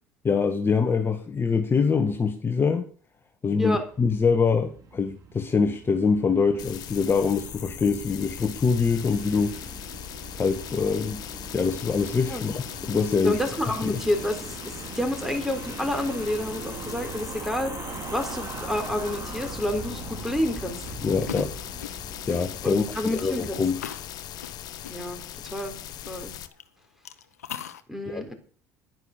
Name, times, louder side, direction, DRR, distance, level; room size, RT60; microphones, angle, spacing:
voice 1, 0.2-2.9 3.4-9.6 10.4-11.2 11.5-13.4 13.8-14.0 21.0-21.5 22.3-23.8 28.1-28.2, left 5 dB, 25° left, 1.7 m, -24 dB
sound 1, 3.9-23.4, right 4 dB, 40° right, 4.1 m, -41 dB
sound 2, 6.6-26.5, left 11 dB, 55° left, 1.3 m, -39 dB
voice 2, 13.2-20.8 22.6-23.6 24.9-25.7 26.1-26.3 27.9-28.3, left 1 dB, 5° right, 4.2 m, -29 dB
sound 3, 20.7-26.6 27.1-27.8, left 10 dB, 85° left, 1.0 m, -39 dB
11.0 x 10.5 x 6.9 m
hypercardioid pair, 65°, 8 cm